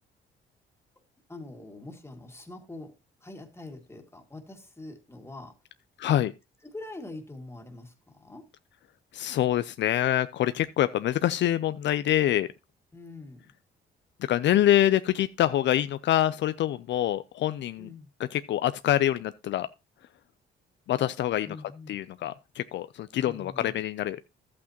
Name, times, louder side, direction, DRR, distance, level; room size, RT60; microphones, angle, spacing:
voice 1, 1.3-2.9 3.2-5.5 6.1-6.2 6.6-7.9 8.2-8.4 12.9-13.5 17.8-18.1 21.5-22.0 23.2-23.8, left 2 dB, 10° left, 2.0 m, -43 dB
voice 2, 6.0-6.3 9.1-12.5 14.3-17.9 18.2-19.7 20.9-24.2, left 12 dB, 65° left, 0.4 m, -25 dB
12.0 x 8.5 x 2.9 m
cardioid pair, 90°, 20 cm